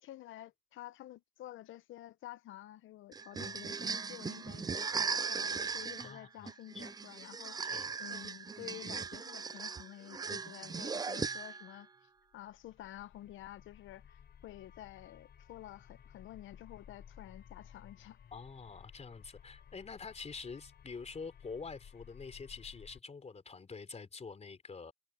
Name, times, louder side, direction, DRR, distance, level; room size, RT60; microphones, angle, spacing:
voice 1, 0.0-11.9 12.3-18.2, left 14 dB, 80° left, 0.9 m, -50 dB
sound 1, 3.1-11.8, right 5 dB, 20° right, 0.3 m, -38 dB
voice 2, 6.0-6.5 6.7-6.8 7.7-7.9 18.3-24.9, left 5 dB, 35° left, 3.5 m, -46 dB
sound 2, 12.3-23.0, left 8 dB, 60° left, 3.3 m, -57 dB
cardioid pair, 90°, 20 cm